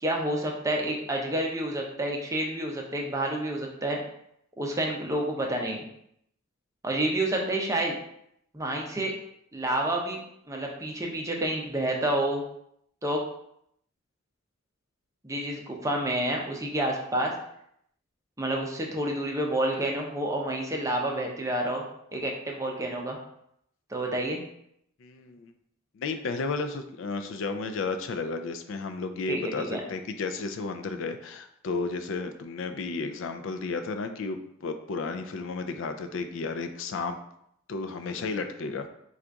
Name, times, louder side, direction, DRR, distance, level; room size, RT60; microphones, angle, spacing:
voice 1, 0.0-4.0 4.6-5.8 6.8-8.0 8.5-9.1 9.5-10.2 10.5-12.4 13.0-13.2 15.2-17.3 18.4-21.8 22.1-23.2 23.9-24.4 29.3-29.8, right 1 dB, 15° right, 0 dB, 0.6 m, -29 dB
voice 2, 25.0-25.5 25.9-37.2 37.7-38.9, left 4 dB, 65° left, 7 dB, 0.4 m, -33 dB
3.8 x 2.4 x 4.5 m, 0.73 s
head